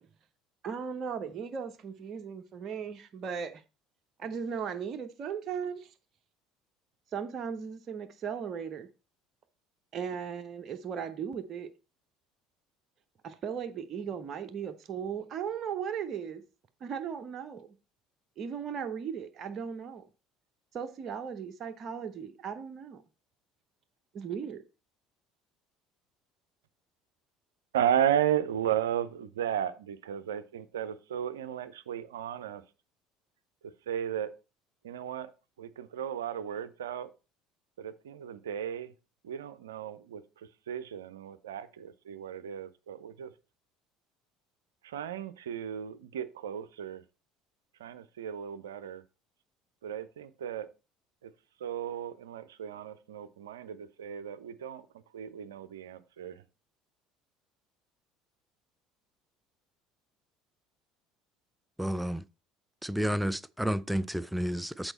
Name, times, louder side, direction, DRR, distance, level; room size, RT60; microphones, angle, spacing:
voice 1, 0.6-3.6 4.2-5.9 7.1-8.9 9.9-11.7 13.2-16.4 16.8-17.7 18.4-20.0 20.7-23.0 24.1-24.6, right 7 dB, 45° right, 0.7 m, -37 dB
voice 2, 27.7-32.6 33.9-34.3 34.8-35.3 35.6-37.1 37.8-38.9 39.2-40.2 40.7-43.3 44.8-47.0 47.8-49.0 49.8-50.7 51.2-51.3 51.6-54.8 55.1-56.4, right 10 dB, 75° right, 0.5 m, -34 dB
voice 3, 61.8-62.2 62.8-64.9, equal, 5° right, 0.4 m, -31 dB
8.0 x 4.3 x 4.3 m
figure-of-eight pair, 60°, 0 cm